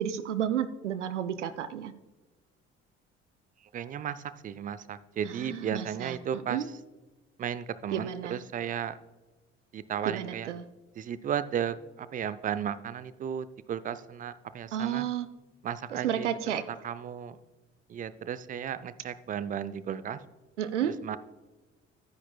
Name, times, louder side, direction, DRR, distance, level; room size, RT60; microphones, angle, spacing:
voice 1, 0.0-1.9 5.4-6.2 6.5-6.7 7.9-8.4 10.1-10.6 14.7-15.3 16.0-16.6 20.6-20.9, right 9 dB, 80° right, 14 dB, 0.5 m, -31 dB
voice 2, 3.7-6.8 7.4-9.0 9.7-10.5 11.0-15.1 15.6-16.3 16.7-17.4 17.9-20.2 21.0-21.2, right 8 dB, 25° right, 15 dB, 0.4 m, -34 dB
11.0 x 9.9 x 2.2 m, 1.2 s
figure-of-eight pair, 50°, 35 cm